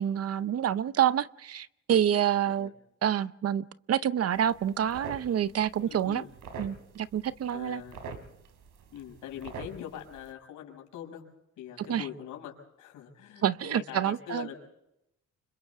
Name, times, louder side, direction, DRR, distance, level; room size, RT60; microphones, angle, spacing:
voice 1, 0.0-2.7 3.0-6.2 6.6-7.8 11.8-12.1 13.4-14.5, right 10 dB, 55° right, 0.7 m, -28 dB
sound 1, 4.3-10.3, right 4 dB, 90° right, 3.4 m, -46 dB
voice 2, 5.9-6.3 7.5-8.0 8.9-11.2 11.6-14.5, left 10 dB, 85° left, 6.6 m, -43 dB
29.5 x 26.0 x 3.6 m
cardioid pair, 90°, 30 cm